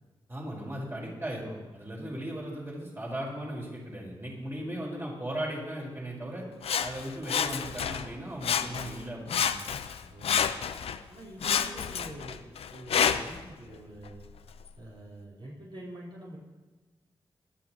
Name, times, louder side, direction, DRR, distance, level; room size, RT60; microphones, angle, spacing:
voice 1, 0.3-6.4 6.8-9.5 10.0-10.1, right 1 dB, 25° right, -3 dB, 4.9 m, -37 dB
Sawing, 6.6-8.1 8.4-9.0 9.3-11.0 11.4-13.4 14.1-14.2, left 8 dB, 85° left, 0.6 m, -29 dB
voice 2, 10.1-10.6 11.1-14.2 14.8-16.4, right 1 dB, 60° right, -6 dB, 4.6 m, -45 dB
20.5 x 12.5 x 3.1 m, 1.3 s
cardioid pair, 50°, 10 cm